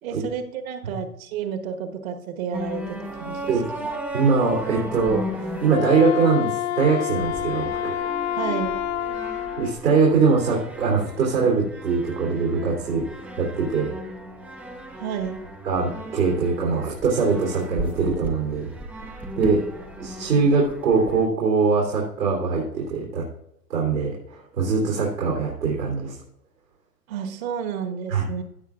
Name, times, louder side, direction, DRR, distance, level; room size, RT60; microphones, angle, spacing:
voice 1, 0.0-3.9 8.4-8.8 14.9-15.4 27.1-28.4, right 7 dB, 55° right, 5 dB, 1.6 m, -31 dB
sound 1, 2.5-5.7 7.2-21.3, equal, 5° right, 0.5 m, -36 dB
voice 2, 4.1-5.2 5.6-7.9 9.6-13.1 13.4-13.9 15.6-18.7 19.4-19.6 20.0-23.2 23.7-26.1 28.1-28.2, right 4 dB, 85° right, -3 dB, 3.4 m, -22 dB
Wind instrument woodwind instrument, 5.6-9.8, left 11 dB, 40° left, 0.6 m, -28 dB
16.0 x 7.1 x 2.5 m, 0.80 s
hypercardioid pair, 115°, 49 cm